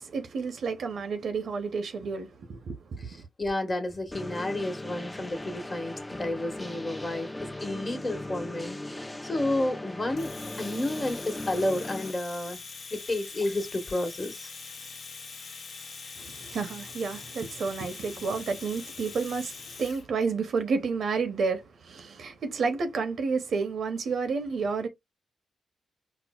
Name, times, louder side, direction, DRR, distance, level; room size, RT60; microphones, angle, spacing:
voice 1, 0.0-3.3 16.2-24.9, right 4 dB, 70° right, 0.6 m, -30 dB
voice 2, 3.4-12.6 12.9-14.5 18.2-18.3, left 1 dB, 40° left, 1.2 m, -31 dB
sound 1, 4.1-12.1, left 1 dB, 15° left, 0.3 m, -38 dB
Domestic sounds home sounds, 10.2-20.1, left 4 dB, 65° left, 0.5 m, -43 dB
4.2 x 2.0 x 2.3 m
supercardioid pair, 50°, 0 cm